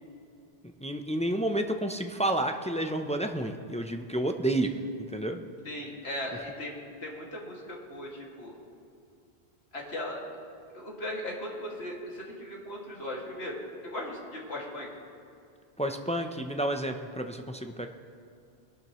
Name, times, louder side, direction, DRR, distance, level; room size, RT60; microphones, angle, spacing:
voice 1, 0.8-5.4 15.8-17.9, right 1 dB, 10° left, 5 dB, 0.4 m, -30 dB
voice 2, 5.6-8.6 9.7-10.2 10.7-14.9, left 1 dB, 80° left, -3 dB, 2.5 m, -38 dB
21.0 x 11.5 x 3.1 m, 2.5 s
omnidirectional pair, 1.1 m